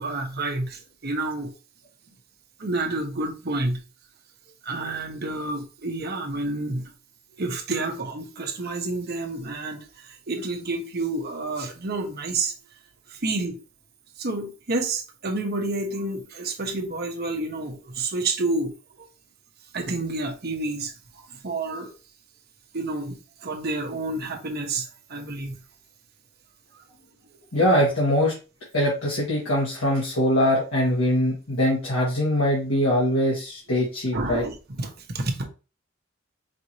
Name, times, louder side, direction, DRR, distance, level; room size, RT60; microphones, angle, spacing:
voice 1, 0.0-1.5 2.6-3.8 4.6-6.9 7.4-12.5 13.1-13.6 14.2-19.1 19.7-20.9 21.3-21.9 22.7-25.6 34.1-35.4, right 2 dB, 50° right, 0.9 m, -29 dB
voice 2, 27.5-28.3 28.7-34.4, equal, 80° left, 1.6 m, -22 dB
5.1 x 3.1 x 2.8 m
head